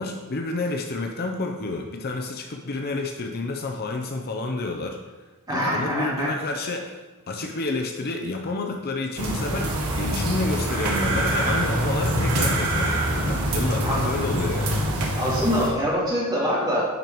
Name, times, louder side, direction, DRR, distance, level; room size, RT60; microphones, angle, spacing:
voice 1, 0.0-5.0 5.5-14.8, left 2 dB, 45° left, 3 dB, 0.7 m, -29 dB
voice 2, 5.5-6.3 13.8-14.0 15.2-16.8, equal, 20° right, -6 dB, 2.7 m, -24 dB
sound 1, 9.2-15.7, right 1 dB, 70° right, 1.6 m, -25 dB
10.5 x 4.7 x 4.6 m, 1.3 s
head